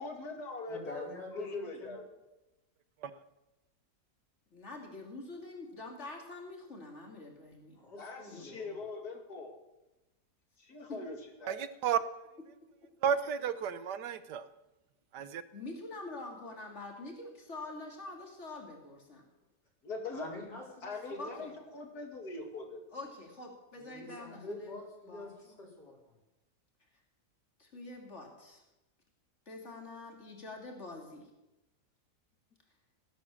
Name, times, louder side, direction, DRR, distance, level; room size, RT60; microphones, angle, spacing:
voice 1, 0.0-1.1 1.3-2.0 8.0-9.6 10.6-11.2 11.4-11.6 19.8-20.3 20.8-22.8, left 3 dB, 65° left, 3 dB, 2.8 m, -42 dB
voice 2, 0.7-1.9 7.7-8.8 20.1-21.4 22.4-22.5 23.8-26.2, left 2 dB, 90° left, -2 dB, 5.0 m, -46 dB
voice 3, 4.5-7.8 8.3-8.6 10.9-11.0 15.5-19.2 21.2-21.5 22.9-24.7 25.1-25.3 27.6-28.6 29.5-31.3, left 2 dB, 40° left, 1 dB, 3.3 m, -45 dB
voice 4, 11.5-12.3 13.0-14.5 15.1-15.4, right 8 dB, 85° right, 13 dB, 1.5 m, -32 dB
17.5 x 10.0 x 7.2 m, 0.98 s
omnidirectional pair, 1.7 m